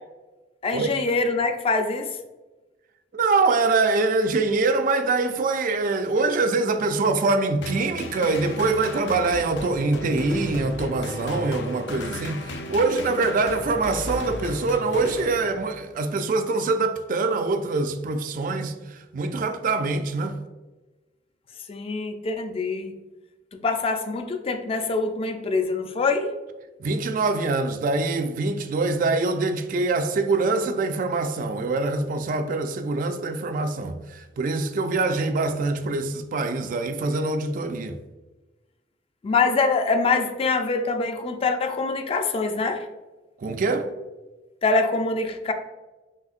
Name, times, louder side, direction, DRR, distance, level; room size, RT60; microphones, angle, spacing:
voice 1, 0.6-2.1 21.7-22.9 23.5-26.4 39.2-42.9 44.6-45.5, left 3 dB, 35° left, 0.4 m, -24 dB
voice 2, 3.1-18.7 19.1-20.4 26.8-38.0 43.4-43.9, right 3 dB, 50° right, 0.3 m, -24 dB
sound 1, 7.6-15.9, left 2 dB, 90° left, 0.5 m, -35 dB
5.3 x 3.0 x 2.4 m
head